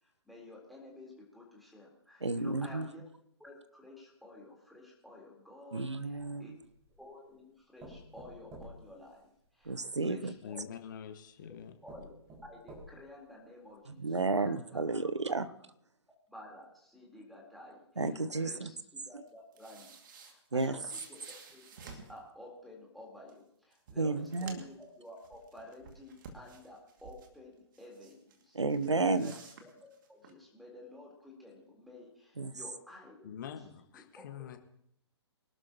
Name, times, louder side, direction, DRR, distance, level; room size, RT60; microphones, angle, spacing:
voice 1, 0.0-3.0 3.4-6.5 7.0-9.8 10.1-10.7 11.8-14.8 16.3-18.7 19.1-21.2 21.5-28.6 29.1-29.3 29.6-29.7 30.1-33.4 33.9-34.5, left 1 dB, ahead, 3.9 m, -52 dB
voice 2, 2.2-2.9 5.7-6.6 9.6-10.3 14.0-15.5 18.0-18.7 20.5-20.8 24.0-24.6 28.5-29.3 32.4-32.5, right 3 dB, 80° right, 0.9 m, -32 dB
sound 1, 6.1-7.0 7.8-9.8 10.7-10.8 11.4-11.5 11.9-13.2 13.7-13.8 14.1-14.2, right 1 dB, 20° right, 5.7 m, -51 dB
voice 3, 10.4-11.7 33.2-34.6, left 8 dB, 45° left, 1.6 m, -45 dB
sound 2, 19.3-22.2 23.3-23.4 23.7-24.8 25.2-27.3 27.7-28.4 28.7-30.3, right 5 dB, 45° right, 2.4 m, -52 dB
25.0 x 12.0 x 3.0 m
figure-of-eight pair, 125°, 15 cm